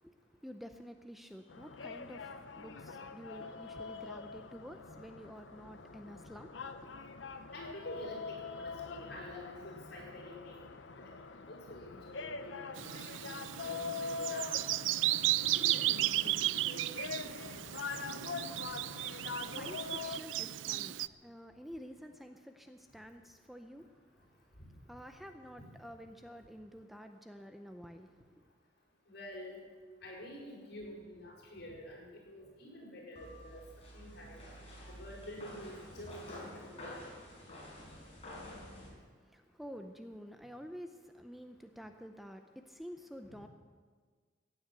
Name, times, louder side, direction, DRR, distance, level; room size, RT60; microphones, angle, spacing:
voice 1, 0.4-6.9 19.2-23.9 24.5-28.4 38.9-43.5, equal, ahead, 6 dB, 0.6 m, -50 dB
sound 1, 1.5-20.2, left 4 dB, 90° left, 0.8 m, -44 dB
voice 2, 7.5-10.6 10.9-12.5 12.8-14.7 15.4-17.6 24.6-24.7 29.1-29.6 30.0-33.6 33.9-34.4 34.9-37.0 43.3-43.4, equal, 65° left, -3 dB, 6.0 m, -48 dB
Bird vocalization bird call bird song, 12.8-21.1, right 15 dB, 85° right, 0.4 m, -34 dB
sound 2, 33.2-38.9, left 1 dB, 35° left, 4.9 m, -49 dB
16.0 x 9.1 x 7.7 m, 1.5 s
head